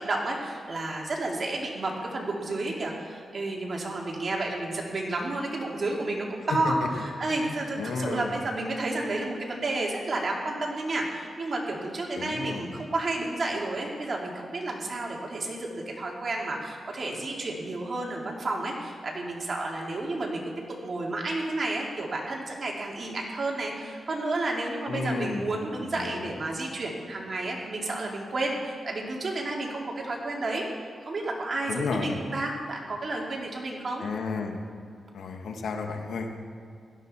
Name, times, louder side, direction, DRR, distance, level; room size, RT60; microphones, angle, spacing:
voice 1, 0.0-20.5 20.8-30.7 31.1-34.0, right 2 dB, 40° right, -1 dB, 2.5 m, -31 dB
voice 2, 7.3-8.3 12.2-12.7 24.9-25.5 25.9-26.3 31.7-32.2 34.0-34.6 35.1-36.4, left 4 dB, 90° left, 3 dB, 1.5 m, -32 dB
16.5 x 12.5 x 4.3 m, 2.4 s
wide cardioid pair, 135°, 0 cm